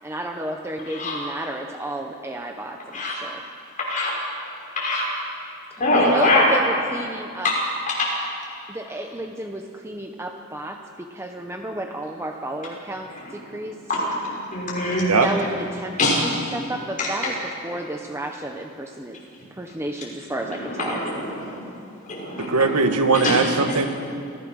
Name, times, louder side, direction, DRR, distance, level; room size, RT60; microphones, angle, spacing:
voice 1, 0.0-3.5 5.7-7.5 8.7-13.8 15.2-19.2 19.5-21.0, right 1 dB, 10° right, 3 dB, 0.9 m, -32 dB
voice 2, 5.8-6.6 7.4-7.6 7.9-8.1 13.9-14.1 14.5-15.1 16.0-16.3 17.0-17.3 20.6-21.6 22.0-22.7 23.1-23.4, left 2 dB, 35° left, -4 dB, 5.8 m, -23 dB
voice 3, 22.4-23.9, right 4 dB, 90° right, 7 dB, 1.4 m, -20 dB
26.5 x 15.5 x 6.4 m, 2.6 s
head